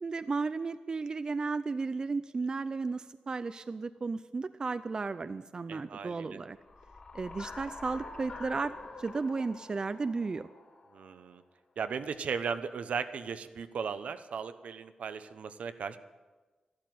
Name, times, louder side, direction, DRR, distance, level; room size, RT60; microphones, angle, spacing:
voice 1, 0.0-6.6 7.1-8.7 9.0-10.5, right 4 dB, 35° right, 12 dB, 0.5 m, -34 dB
voice 2, 5.7-6.4 10.9-11.4 11.8-16.0, right 6 dB, 75° right, 11 dB, 0.9 m, -37 dB
sound 1, 6.6-11.3, left 3 dB, 50° left, 4.0 m, -46 dB
12.5 x 12.5 x 9.2 m, 1.3 s
wide cardioid pair, 110°, 2 cm